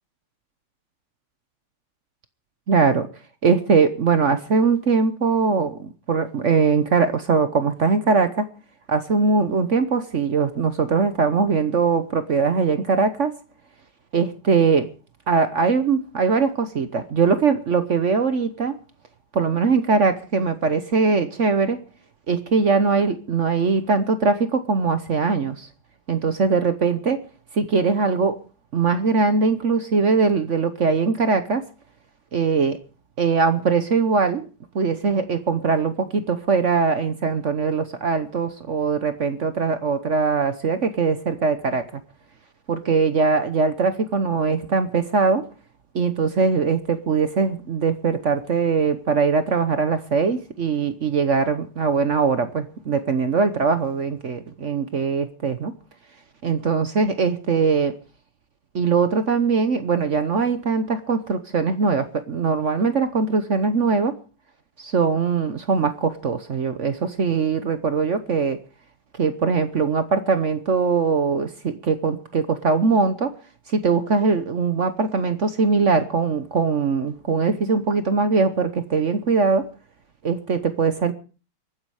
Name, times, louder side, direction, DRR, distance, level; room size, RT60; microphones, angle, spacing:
voice 1, 2.7-3.1 3.4-8.5 8.9-13.3 14.1-14.9 15.3-18.8 19.3-21.8 22.3-25.7 26.1-27.2 27.5-28.4 28.7-31.7 32.3-32.8 33.2-34.5 34.7-41.9 42.7-45.4 45.9-55.7 56.4-57.9 58.7-64.1 64.8-68.6 69.2-73.3 73.7-79.7 80.2-81.1, right 4 dB, 50° right, 11 dB, 0.9 m, -21 dB
23.0 x 9.8 x 4.8 m, 0.36 s
omnidirectional pair, 2.4 m